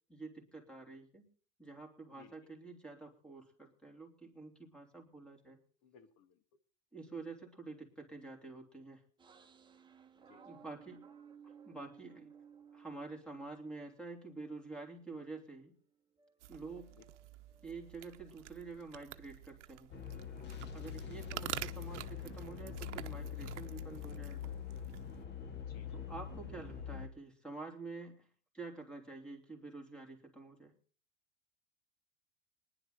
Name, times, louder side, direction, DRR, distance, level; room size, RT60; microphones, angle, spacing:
voice 1, 0.1-1.2 1.6-5.6 6.9-9.0 10.4-11.1 11.6-12.3 12.7-15.7 16.5-17.0 17.6-19.9 20.7-24.5 25.9-28.3 28.5-30.7, right 3 dB, 5° left, 2 dB, 3.1 m, -48 dB
voice 2, 2.1-2.5 5.8-6.4 10.2-10.6 16.9-17.0 21.0-21.4 25.7-26.1, left 7 dB, 50° left, 11 dB, 1.8 m, -62 dB
sound 1, 9.2-15.2 15.6-19.8 20.1-22.7, right 7 dB, 15° right, 1.4 m, -61 dB
sound 2, 16.4-25.2, right 15 dB, 80° right, 0.9 m, -49 dB
sound 3, 19.9-27.1, left 7 dB, 30° left, 1.7 m, -44 dB
20.0 x 11.0 x 4.0 m, 0.43 s
hypercardioid pair, 110°, 35 cm